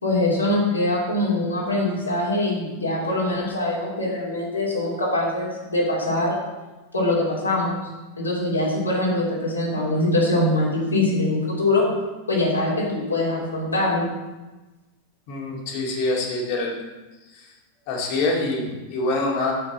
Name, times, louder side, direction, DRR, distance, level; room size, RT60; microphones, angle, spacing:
voice 1, 0.0-6.3 6.9-7.9 8.2-11.9 12.3-14.1, left 2 dB, 80° left, -5 dB, 3.0 m, -23 dB
voice 2, 15.3-16.9 17.3-17.5 17.9-19.5, left 2 dB, 45° left, -1 dB, 2.1 m, -25 dB
9.7 x 7.5 x 4.2 m, 1.2 s
figure-of-eight pair, 90°, 0 cm